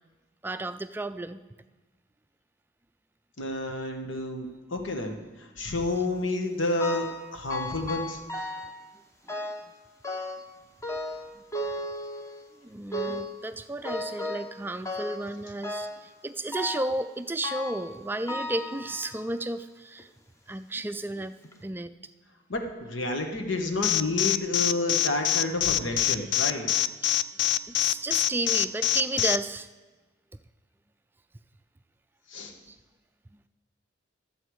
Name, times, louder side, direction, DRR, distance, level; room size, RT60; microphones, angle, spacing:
voice 1, 0.4-1.4 12.6-20.1 20.5-21.3 21.6-21.9 27.0-27.2 27.7-29.7 32.4-32.8, right 2 dB, 10° right, 11 dB, 0.3 m, -33 dB
voice 2, 3.4-8.2 22.5-26.8 32.3-32.5, left 2 dB, 90° left, 4 dB, 1.3 m, -30 dB
sound 1, 6.8-7.2 7.5-8.8 9.3-9.7 10.0-10.5 10.8-12.5 12.9-13.4 13.8-14.5 14.9-15.3 15.6-16.1 16.5-17.0 17.4-17.9 18.3-19.3 20.0-20.1 20.9-21.0 21.4-21.5, left 1 dB, 15° left, 0.7 m, -35 dB
Alarm, 23.8-29.4, left 13 dB, 65° left, 0.3 m, -24 dB
13.0 x 7.7 x 4.7 m, 1.3 s
head